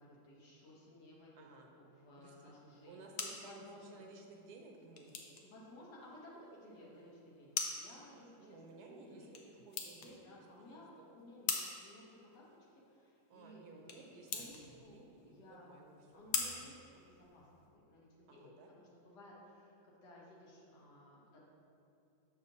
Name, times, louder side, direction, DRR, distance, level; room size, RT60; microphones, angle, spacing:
voice 1, 0.0-1.5 1.7-3.0 3.4-4.0 5.4-9.5 9.9-10.9 11.1-12.5 12.7-15.0 15.2-15.7 16.1-16.8 17.0-21.4, left 1 dB, 80° left, -5 dB, 1.7 m, -57 dB
voice 2, 1.4-1.7 2.2-2.5 2.8-5.4 8.4-11.2 13.3-16.7 18.3-18.7, right 3 dB, 75° right, 2 dB, 1.2 m, -57 dB
sound 1, 2.7-17.7, left 5 dB, 65° left, 0.7 m, -45 dB
6.5 x 5.9 x 2.7 m, 2.6 s
omnidirectional pair, 1.8 m